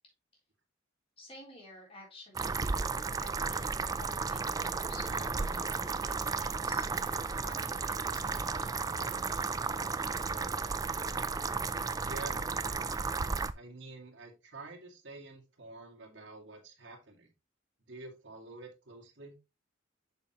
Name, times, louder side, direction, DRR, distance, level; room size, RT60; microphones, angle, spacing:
voice 1, 1.2-2.7 3.2-6.9 7.4-10.1, left 1 dB, 30° left, -2 dB, 3.7 m, -53 dB
sound 1, 2.3-13.5, right 4 dB, 20° right, 0.3 m, -33 dB
sound 2, 5.0-11.9, right 5 dB, 85° right, 0.8 m, -56 dB
voice 2, 12.0-13.0 13.5-17.3 17.9-19.4, right 3 dB, 65° right, 0 dB, 2.3 m, -48 dB
7.1 x 7.0 x 2.9 m, 0.26 s
head